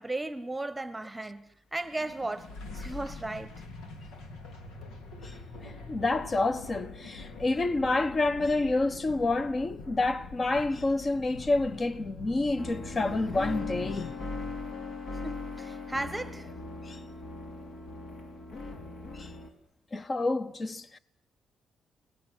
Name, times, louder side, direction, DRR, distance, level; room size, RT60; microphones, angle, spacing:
voice 1, 0.0-3.5 15.2-16.5, right 2 dB, 10° right, 1.4 m, -36 dB
sound 1, 1.8-14.9, left 3 dB, 85° left, 3.5 m, -45 dB
voice 2, 5.6-14.2 16.9-17.0 19.1-19.3 19.9-21.0, left 2 dB, 30° left, 1.4 m, -28 dB
sound 2, 12.6-19.5, left 3 dB, 65° left, 5.2 m, -39 dB
29.5 x 20.0 x 10.0 m
cardioid pair, 110°, 0 cm